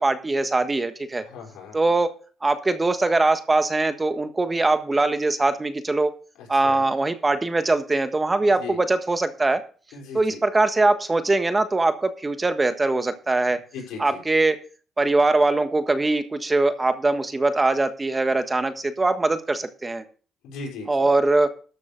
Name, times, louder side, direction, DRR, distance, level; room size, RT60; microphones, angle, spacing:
voice 1, 0.0-1.2 1.7-2.1 2.4-6.1 6.5-9.6 10.1-13.6 14.0-14.5 15.0-20.0 20.9-21.5, right 2 dB, 20° right, 9 dB, 1.4 m, -22 dB
voice 2, 1.2-1.8 6.4-6.9 8.4-8.8 9.9-10.4 13.5-14.2 20.4-20.9, left 4 dB, 90° left, -2 dB, 5.4 m, -38 dB
13.0 x 6.9 x 5.1 m, 0.39 s
cardioid pair, 90°, 0 cm